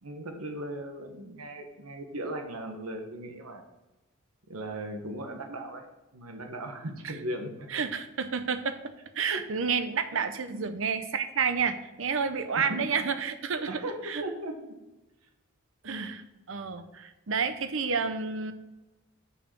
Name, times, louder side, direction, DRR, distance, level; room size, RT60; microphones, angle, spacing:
voice 1, 0.0-3.6 4.5-5.9 6.1-7.8 9.3-9.4 10.1-10.2 10.5-10.6 12.5-12.9 13.7-14.8 15.8-16.1, right 1 dB, 90° right, 5 dB, 1.3 m, -38 dB
voice 2, 7.7-13.7 14.0-14.2 15.8-16.2 16.5-18.5, right 5 dB, 60° right, 10 dB, 0.7 m, -30 dB
6.4 x 5.5 x 6.2 m, 1.0 s
head